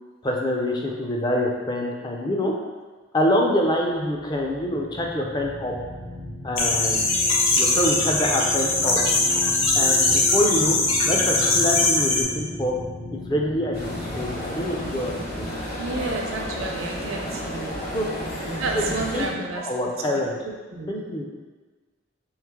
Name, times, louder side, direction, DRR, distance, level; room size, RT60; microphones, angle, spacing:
voice 1, 0.2-2.5 3.1-5.7 6.4-7.0 7.5-9.0 9.8-10.8 11.1-12.8 13.1-15.5 17.9-18.1 18.5-20.4 20.9-21.2, left 1 dB, 20° left, -1 dB, 0.4 m, -25 dB
sound 1, 3.8-17.5, left 1 dB, 60° left, 1.5 m, -37 dB
sound 2, 6.6-12.2, left 3 dB, 75° left, 0.6 m, -21 dB
sound 3, 13.7-19.3, equal, 45° left, 1.0 m, -32 dB
voice 2, 15.7-17.8 18.6-19.7 20.1-21.0, right 3 dB, 85° right, 1 dB, 0.6 m, -31 dB
3.6 x 3.1 x 3.5 m, 1.3 s
head